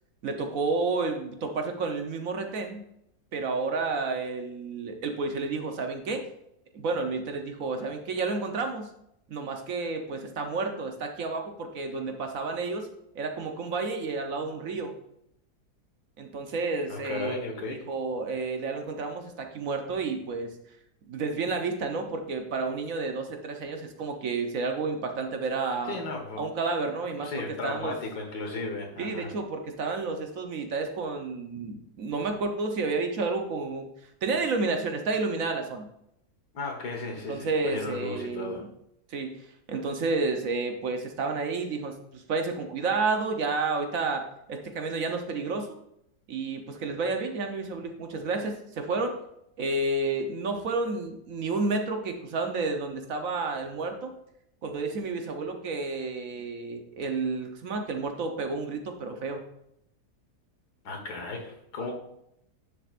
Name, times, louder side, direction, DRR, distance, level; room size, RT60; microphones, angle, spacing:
voice 1, 0.2-2.8 3.3-6.2 6.7-8.9 9.3-12.9 13.1-14.9 16.2-20.5 21.1-26.0 26.4-27.3 27.6-27.9 29.0-33.9 34.2-35.9 37.3-38.7 39.1-45.8 46.3-49.1 49.6-54.1 54.6-59.4, right 3 dB, 60° right, 5 dB, 1.3 m, -31 dB
voice 2, 16.9-17.9 25.8-26.5 27.2-29.3 36.5-38.7 60.8-61.9, left 3 dB, 80° left, 2 dB, 2.1 m, -35 dB
9.9 x 7.1 x 2.5 m, 0.77 s
omnidirectional pair, 1.7 m